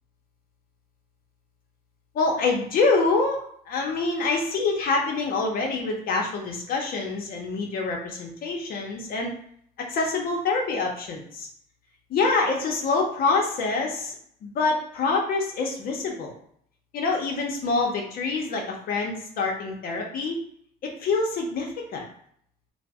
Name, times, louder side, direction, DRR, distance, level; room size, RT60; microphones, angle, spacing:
voice 1, 2.1-3.4 3.7-9.4 9.9-11.5 12.1-16.3 16.9-20.4 20.8-22.0, left 3 dB, 60° left, 0 dB, 0.6 m, -26 dB
2.5 x 2.0 x 3.4 m, 0.66 s
cardioid pair, 110°, 17 cm